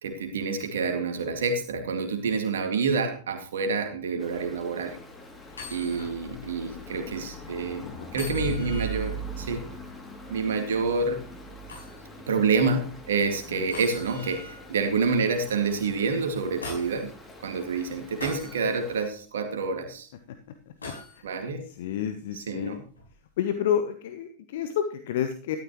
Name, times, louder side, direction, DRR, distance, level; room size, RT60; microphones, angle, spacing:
voice 1, 0.0-5.0 5.7-7.9 8.1-9.6 10.3-11.2 12.3-17.1 17.4-20.1 21.2-21.6 22.5-22.8, right 4 dB, 60° right, 5 dB, 2.2 m, -28 dB
Stream, 4.2-19.1, right 1 dB, 15° left, 2.7 m, -41 dB
sound 1, 5.5-6.1 6.6-6.7 8.1-9.1 11.7-12.0 13.7-14.6 16.1-17.0 18.2-18.6 20.8-21.2 23.0-23.1, left 3 dB, 75° left, 5.6 m, -40 dB
voice 2, 6.7-7.1 7.8-8.1 13.5-13.7 20.3-20.4 21.1-21.2 21.7-22.8 23.4-25.6, left 9 dB, 55° left, 8 dB, 1.0 m, -30 dB
12.5 x 12.0 x 3.1 m, 0.41 s
figure-of-eight pair, 90°, 0 cm